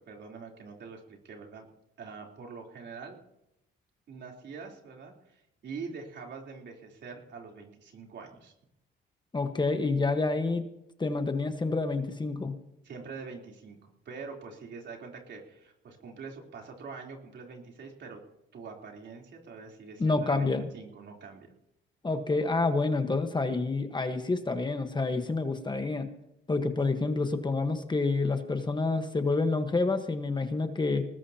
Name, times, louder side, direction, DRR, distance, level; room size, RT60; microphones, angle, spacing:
voice 1, 0.0-1.7 2.0-3.2 4.1-8.5 12.8-18.2 18.5-21.5, right 5 dB, 60° right, 0 dB, 3.7 m, -44 dB
voice 2, 9.3-10.6 11.0-12.5 20.0-20.7 22.0-26.1 26.5-31.0, left 3 dB, 20° left, 7 dB, 1.3 m, -28 dB
20.0 x 19.5 x 2.9 m, 0.82 s
cardioid pair, 90°, 20 cm